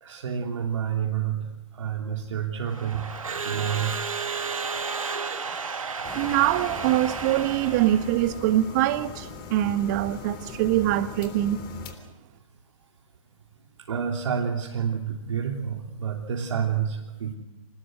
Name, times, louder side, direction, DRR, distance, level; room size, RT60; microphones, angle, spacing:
voice 1, 0.0-3.1 3.4-4.0 13.9-17.3, right 8 dB, 65° right, 3.3 m, -29 dB
Crowd / Alarm, 2.7-8.2, right 5 dB, 80° right, 2.1 m, -32 dB
sound 1, 6.0-11.9, left 5 dB, 25° left, 3.4 m, -40 dB
voice 2, 6.1-11.6, right 13 dB, 30° right, 1.4 m, -24 dB
26.5 x 19.5 x 8.0 m
figure-of-eight pair, 135°, 17 cm